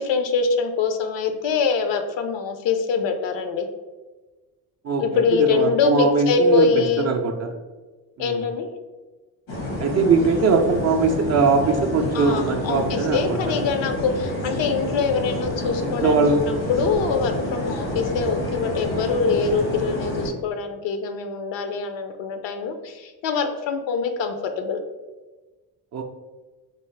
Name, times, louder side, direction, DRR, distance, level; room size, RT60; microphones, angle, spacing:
voice 1, 0.0-3.7 5.0-7.1 8.2-8.7 12.1-24.8, left 5 dB, 65° left, 7 dB, 0.6 m, -24 dB
voice 2, 4.8-7.5 8.2-8.4 9.8-13.7 15.8-16.4 25.9-26.0, right 4 dB, 35° right, 3 dB, 0.4 m, -21 dB
sound 1, 9.5-20.3, left 1 dB, 80° left, 1.2 m, -29 dB
3.3 x 2.0 x 3.1 m, 1.2 s
hypercardioid pair, 50°, 48 cm